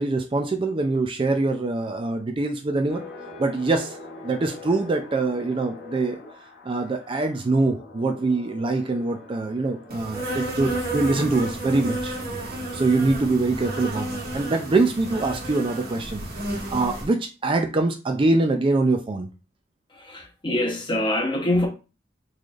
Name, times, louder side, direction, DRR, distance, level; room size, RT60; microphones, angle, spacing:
voice 1, 0.0-3.0 3.4-4.0 4.2-6.2 6.6-12.1 12.5-16.2 16.7-19.3, right 3 dB, 25° right, 0.4 m, -24 dB
sound 1, 2.9-14.1, left 3 dB, 55° left, 1.1 m, -45 dB
Insect, 9.9-17.1, right 1 dB, 55° right, 1.3 m, -31 dB
voice 2, 19.9-21.7, left 1 dB, 25° left, 0.9 m, -24 dB
4.0 x 3.2 x 2.4 m
head